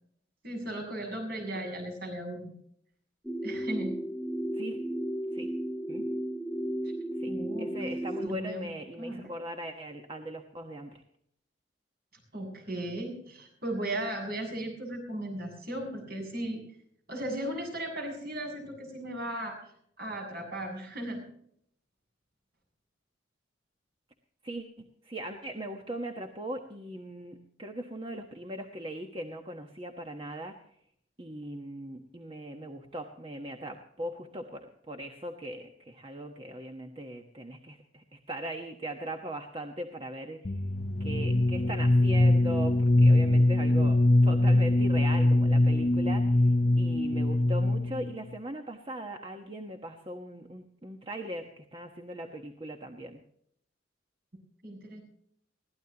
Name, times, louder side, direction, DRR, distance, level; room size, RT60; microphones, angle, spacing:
voice 1, 0.4-2.5 3.4-4.0 7.3-7.9 8.2-8.7 9.0-9.3 12.3-16.6 17.1-19.6 20.0-21.2 54.6-55.0, right 1 dB, 55° right, 2 dB, 7.1 m, -36 dB
sound 1, 3.3-8.3, right 1 dB, ahead, 0.9 m, -34 dB
voice 2, 7.2-11.0 24.4-24.6 25.0-30.5 31.2-40.6 41.0-53.2, right 1 dB, 30° right, 4 dB, 1.3 m, -39 dB
sound 2, 40.4-48.1, left 1 dB, 40° left, 0.7 m, -23 dB
22.0 x 16.5 x 2.9 m, 0.69 s
head